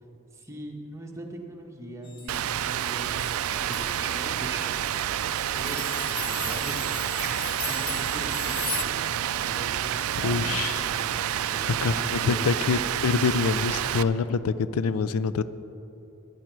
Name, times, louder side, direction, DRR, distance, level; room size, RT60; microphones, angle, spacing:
voice 1, 0.3-4.9 5.5-7.3 7.7-10.4 10.7-11.1 11.5-12.5, right 1 dB, 15° right, 0 dB, 1.2 m, -41 dB
sound 1, 2.0-4.2 4.9-5.0 5.4-8.8, left 4 dB, 25° left, 0.7 m, -37 dB
Rain, 2.3-14.0, right 10 dB, 75° right, 0.4 m, -29 dB
sound 2, 3.5-4.9 6.2-11.8, right 5 dB, 50° right, 0.9 m, -43 dB
voice 2, 10.2-10.8 11.7-15.4, left 5 dB, 85° left, 14 dB, 0.4 m, -26 dB
14.5 x 10.0 x 4.6 m, 3.0 s
head